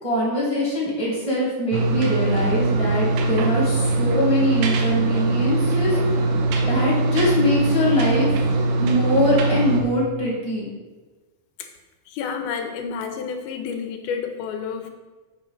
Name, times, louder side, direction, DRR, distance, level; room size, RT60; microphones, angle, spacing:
voice 1, 0.0-6.2 6.7-8.3 8.8-10.7, left 1 dB, 10° left, -5 dB, 2.7 m, -23 dB
sound 1, 1.7-9.8, right 2 dB, 85° right, 2.8 m, -21 dB
voice 2, 12.1-14.9, left 6 dB, 85° left, 6 dB, 2.7 m, -30 dB
7.6 x 6.2 x 5.4 m, 1.3 s
omnidirectional pair, 4.3 m